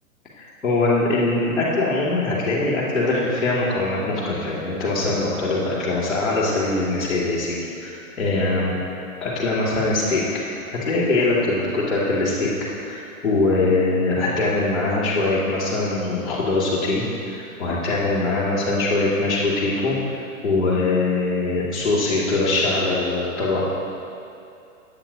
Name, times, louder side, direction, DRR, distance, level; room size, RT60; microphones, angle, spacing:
voice 1, 0.4-8.8 9.2-12.5 12.8-19.9 20.4-23.6, left 2 dB, ahead, -19 dB, 0.4 m, -22 dB
8.6 x 8.0 x 2.9 m, 2.6 s
hypercardioid pair, 150°, 44 cm